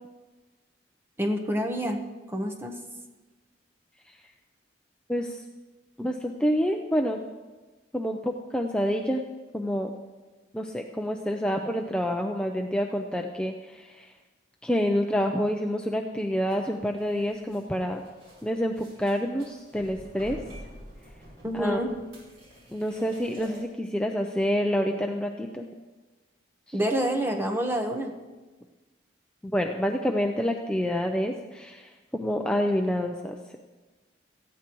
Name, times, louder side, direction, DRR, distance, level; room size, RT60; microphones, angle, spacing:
voice 1, 1.2-2.0 2.3-2.7 21.4-21.9 26.7-28.1, equal, 10° right, 3 dB, 1.0 m, -27 dB
voice 2, 5.1-5.4 6.0-7.2 7.9-9.2 9.5-9.9 10.5-14.1 14.6-18.0 18.4-20.4 21.5-21.8 22.7-25.7 29.4-33.6, equal, 5° left, 2 dB, 0.5 m, -28 dB
sound 1, 16.5-23.6, equal, 90° right, 5.2 m, -48 dB
18.0 x 14.5 x 3.1 m, 1.2 s
head